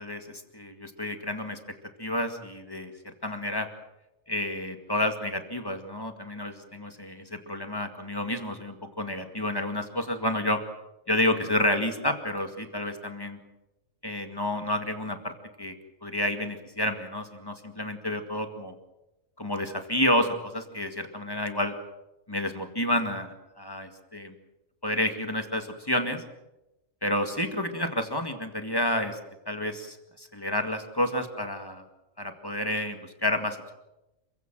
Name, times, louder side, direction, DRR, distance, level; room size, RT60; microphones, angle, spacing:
voice 1, 0.0-1.6 2.0-3.7 4.3-10.6 11.1-13.4 14.0-15.8 16.0-18.7 19.4-21.8 22.3-24.3 24.8-26.2 27.0-29.2 29.5-31.8 32.2-33.7, left 1 dB, 15° left, 6 dB, 2.1 m, -30 dB
28.0 x 16.0 x 7.7 m, 0.95 s
omnidirectional pair, 1.4 m